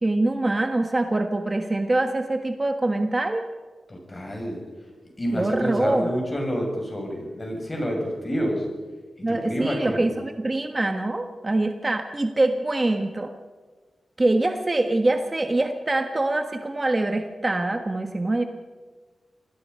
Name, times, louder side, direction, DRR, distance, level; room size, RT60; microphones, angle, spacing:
voice 1, 0.0-3.5 5.3-6.1 9.2-13.3 14.2-18.4, right 2 dB, 25° right, 5 dB, 1.4 m, -24 dB
voice 2, 3.9-4.6 5.2-8.7 9.2-10.1, equal, 25° left, 1 dB, 7.2 m, -28 dB
27.5 x 19.5 x 5.6 m, 1.4 s
wide cardioid pair, 90°, 0 cm